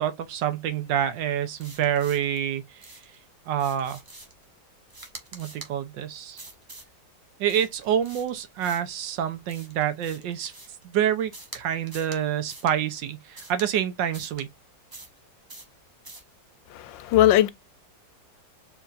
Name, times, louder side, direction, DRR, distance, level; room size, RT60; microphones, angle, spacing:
voice 1, 0.0-3.0 3.5-4.0 5.3-6.4 7.4-10.5 10.8-14.5, right 9 dB, 75° right, 1.5 m, -27 dB
sound 1, 1.6-2.4 2.8-3.2 3.6-4.4 4.9-5.7 6.4-6.9 7.5-9.0 9.5-10.8 11.3-11.6 11.9-12.2 12.5-12.7 13.3-13.7 14.1-14.4 14.9-15.2 15.5-15.7 16.0-16.3, right 2 dB, 30° right, 0.3 m, -45 dB
voice 2, 16.7-17.5, left 13 dB, 90° left, 1.3 m, -19 dB
4.7 x 3.4 x 2.4 m
omnidirectional pair, 2.0 m